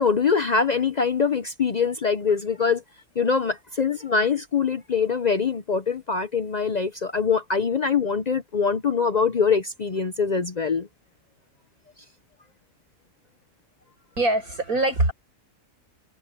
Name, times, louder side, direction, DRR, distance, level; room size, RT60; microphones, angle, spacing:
voice 1, 0.0-2.8 3.2-10.9, left 5 dB, 65° left, 0.4 m, -23 dB
voice 2, 14.2-15.1, right 2 dB, 65° right, 6.3 m, -22 dB
omnidirectional pair, 1.7 m